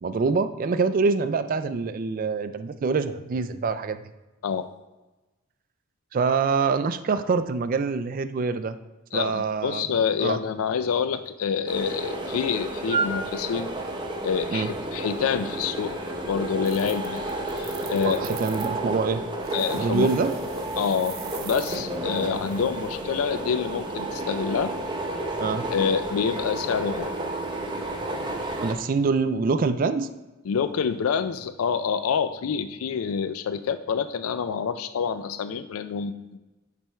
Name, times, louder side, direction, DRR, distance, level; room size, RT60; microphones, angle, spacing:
voice 1, 0.0-4.0 6.1-8.8 9.1-9.8 10.2-10.4 14.5-14.7 18.0-19.2 19.7-20.3 25.4-25.6 28.6-30.1, right 4 dB, 40° right, 11 dB, 0.3 m, -25 dB
voice 2, 9.1-13.7 14.2-15.9 16.3-17.2 17.5-18.2 19.5-20.1 20.8-24.7 25.7-27.1 30.5-36.4, left 6 dB, 85° left, 11 dB, 0.4 m, -27 dB
sound 1, 11.7-28.7, right 1 dB, 20° right, 0.8 m, -31 dB
sound 2, 16.6-18.7 19.4-21.8, right 8 dB, 70° right, 0.8 m, -43 dB
8.9 x 3.4 x 4.4 m, 1.1 s
head